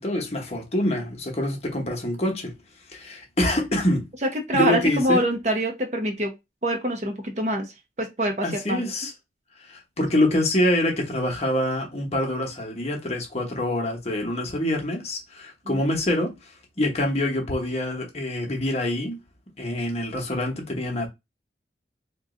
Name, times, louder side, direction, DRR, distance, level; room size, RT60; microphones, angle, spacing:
voice 1, 0.0-2.6 2.9-4.1 4.5-5.2 8.4-9.1 9.6-19.2 19.6-21.1, left 1 dB, 35° left, 1.0 m, -26 dB
voice 2, 4.2-6.3 6.6-7.7 8.0-8.8 15.7-15.8, right 1 dB, 40° right, 0.8 m, -25 dB
3.0 x 2.5 x 3.7 m
head